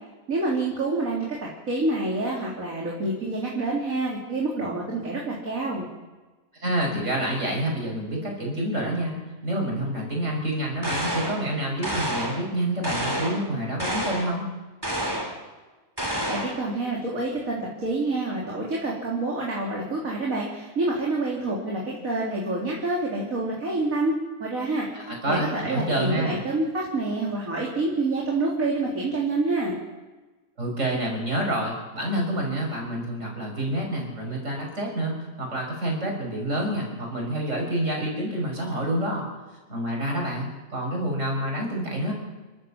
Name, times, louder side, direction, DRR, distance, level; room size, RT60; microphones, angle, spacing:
voice 1, 0.3-5.9 16.3-24.9 25.2-29.8, right 2 dB, 85° right, -4 dB, 3.8 m, -27 dB
voice 2, 6.6-9.2 9.4-14.5 25.1-26.4 30.6-39.3 39.7-42.1, right 1 dB, 60° right, 0 dB, 6.4 m, -28 dB
sound 1, 10.8-11.4 11.8-12.5 12.8-13.5 13.8-14.4 14.8-15.4 16.0-16.6, equal, 15° right, 3.5 m, -29 dB
29.0 x 12.5 x 7.3 m, 1.2 s
omnidirectional pair, 1.4 m